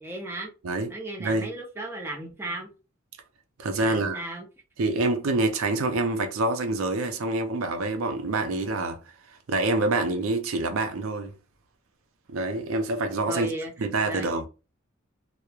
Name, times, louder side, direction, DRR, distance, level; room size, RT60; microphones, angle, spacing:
voice 1, 0.0-0.5 0.9-2.7 3.7-4.5 13.3-13.7 14.0-14.4, right 1 dB, 10° right, 0.5 m, -35 dB
voice 2, 3.6-4.2 4.8-9.0 9.5-11.3 12.3-13.5 13.8-14.5, right 2 dB, 85° right, 0.5 m, -26 dB
2.9 x 2.0 x 2.3 m
head